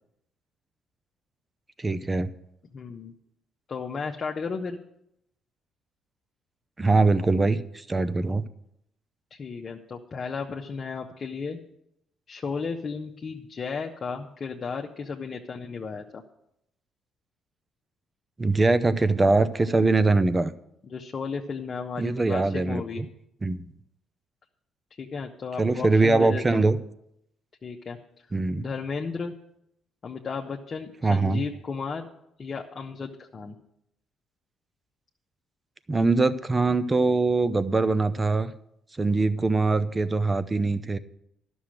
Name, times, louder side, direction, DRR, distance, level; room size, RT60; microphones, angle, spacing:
voice 1, 1.8-2.3 6.8-8.4 18.4-20.5 22.0-23.1 23.4-23.7 25.6-26.8 28.3-28.6 31.0-31.4 35.9-38.5 39.0-41.0, right 3 dB, 25° right, 13 dB, 0.7 m, -22 dB
voice 2, 2.7-3.1 3.7-4.8 9.3-11.6 12.3-16.2 20.8-23.0 25.0-26.7 27.6-28.0 28.6-29.3 30.0-32.1 32.4-33.5, left 5 dB, 45° left, 1 dB, 1.0 m, -34 dB
11.5 x 6.3 x 7.7 m, 0.78 s
supercardioid pair, 75°, 0 cm